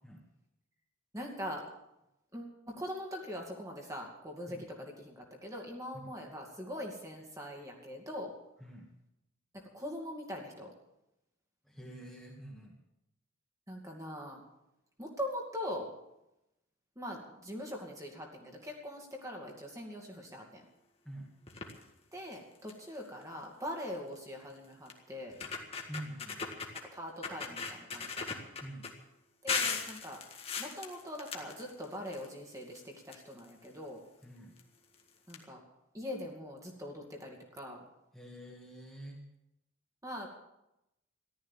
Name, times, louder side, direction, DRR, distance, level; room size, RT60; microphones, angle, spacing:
voice 1, 1.1-1.7 2.3-8.3 9.5-10.7 13.7-14.4 15.0-15.9 17.0-20.6 22.1-25.3 26.9-28.3 29.4-30.2 30.6-34.0 35.3-35.6 35.9-37.9 40.0-40.3, equal, 15° right, 0 dB, 2.4 m, -42 dB
voice 2, 11.6-12.8 21.0-21.3 25.9-26.4 28.6-28.9 34.2-34.6 38.1-39.3, right 1 dB, ahead, -3 dB, 2.1 m, -46 dB
sound 1, 21.5-21.8 22.3-22.4 22.7-23.0 24.2-24.3 24.9-25.0 25.3-26.8 27.2-28.9 29.5-32.3 32.6-33.7 34.6-34.7 34.9-35.0 35.3-35.4, left 5 dB, 30° left, 1.7 m, -38 dB
14.5 x 12.5 x 7.3 m, 0.88 s
head